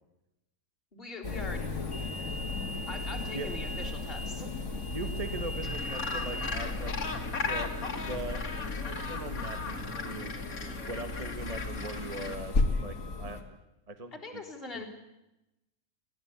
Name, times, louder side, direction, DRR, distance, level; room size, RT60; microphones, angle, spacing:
voice 1, 0.9-2.4 2.9-4.8 14.1-14.8, left 3 dB, 40° left, -3 dB, 4.1 m, -43 dB
sound 1, 1.2-13.4, left 3 dB, 55° left, 2.7 m, -35 dB
sound 2, 1.9-9.6, right 1 dB, 85° right, 8.7 m, -48 dB
voice 2, 4.9-6.9 7.5-7.7 8.0-8.4 8.9-10.3 10.9-12.5 12.8-13.6 13.9-14.4 14.7-14.8, right 2 dB, 25° right, 8 dB, 1.4 m, -40 dB
Gull seagull, 5.6-12.3, left 4 dB, 75° left, 2.5 m, -37 dB
21.5 x 16.5 x 8.5 m, 0.91 s
omnidirectional pair, 1.5 m